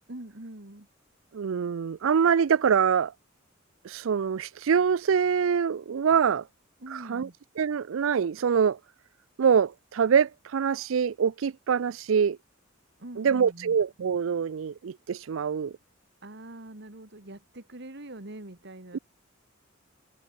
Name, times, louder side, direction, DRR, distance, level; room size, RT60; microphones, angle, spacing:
voice 1, 0.1-0.9 6.8-7.4 13.0-13.8 16.2-19.0, right 1 dB, 60° right, 2.4 m, -43 dB
voice 2, 1.3-3.1 3.8-6.4 6.9-7.3 7.6-8.8 9.4-12.4 13.2-15.7, right 7 dB, 80° right, 0.4 m, -24 dB
head